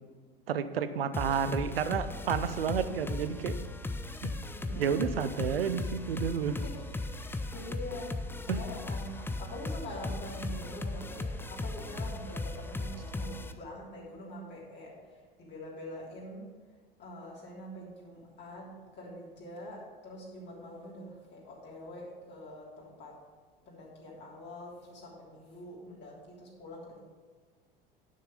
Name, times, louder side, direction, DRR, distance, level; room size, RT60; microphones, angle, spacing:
voice 1, 0.5-3.5 4.2-4.3 4.8-6.6 8.5-8.6, right 7 dB, 75° right, 12 dB, 0.7 m, -31 dB
sound 1, 1.1-13.5, left 2 dB, 10° left, 0.6 m, -37 dB
voice 2, 4.5-5.2 6.5-16.5 17.0-23.1 23.6-27.0, left 1 dB, 35° left, -5 dB, 3.3 m, -45 dB
10.0 x 6.6 x 5.2 m, 1.5 s
figure-of-eight pair, 75°, 29 cm